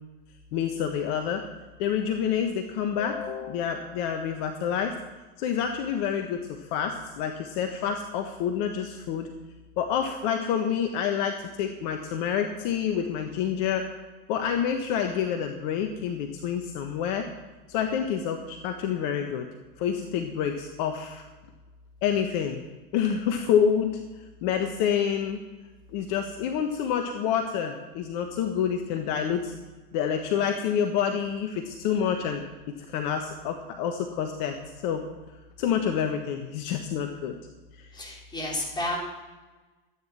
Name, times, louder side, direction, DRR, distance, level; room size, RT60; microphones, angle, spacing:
voice 1, 0.5-1.4 1.8-4.9 5.4-9.3 9.8-13.9 14.3-17.3 17.7-19.5 19.8-21.2 22.0-22.6 22.9-24.0 24.4-25.4 25.9-29.5 29.9-34.6 34.8-35.0 35.6-37.3 37.8-37.9, left 8 dB, 55° left, 5 dB, 1.3 m, -28 dB
voice 2, 37.9-39.0, left 1 dB, 15° left, -2 dB, 4.4 m, -31 dB
13.5 x 9.5 x 5.9 m, 1.2 s
hypercardioid pair, 95°, 29 cm